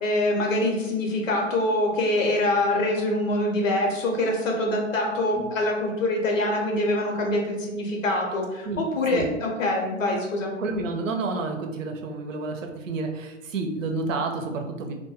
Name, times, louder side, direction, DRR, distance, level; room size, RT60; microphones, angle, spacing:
voice 1, 0.0-10.5, left 1 dB, 80° left, 0 dB, 0.9 m, -24 dB
voice 2, 10.6-14.9, right 3 dB, 75° right, 3 dB, 0.6 m, -30 dB
2.2 x 2.1 x 3.0 m, 1.0 s
hypercardioid pair, 120°, 38 cm